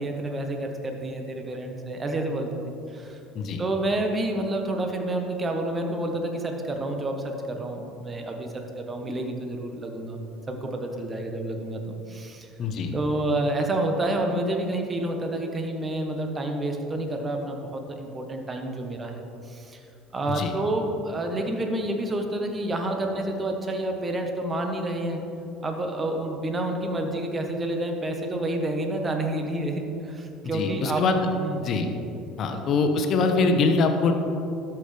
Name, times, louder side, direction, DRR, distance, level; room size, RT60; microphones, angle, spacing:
voice 1, 0.0-2.5 2.9-3.2 3.6-10.2 10.5-12.5 12.9-19.9 20.1-25.2 25.6-31.0 31.4-31.6 32.5-32.6, right 1 dB, 25° right, 3 dB, 1.2 m, -29 dB
voice 2, 12.6-12.9 20.3-20.5 30.5-31.3 31.6-31.9 32.4-34.1, left 4 dB, 50° left, 5 dB, 1.0 m, -23 dB
13.0 x 6.0 x 3.4 m, 2.8 s
hypercardioid pair, 75°, 0 cm